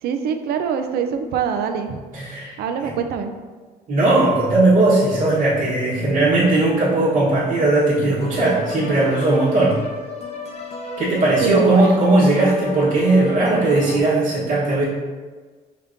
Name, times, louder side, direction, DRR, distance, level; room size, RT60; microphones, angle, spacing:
voice 1, 0.0-2.0 2.6-3.3 11.4-11.9, right 7 dB, 70° right, 7 dB, 0.5 m, -23 dB
voice 2, 2.1-3.0 3.9-9.8 11.0-14.8, right 2 dB, 45° right, -10 dB, 1.2 m, -18 dB
sound 1, 8.2-14.0, left 3 dB, 40° left, 0.6 m, -34 dB
5.4 x 3.5 x 2.6 m, 1.4 s
cardioid pair, 110°, 17 cm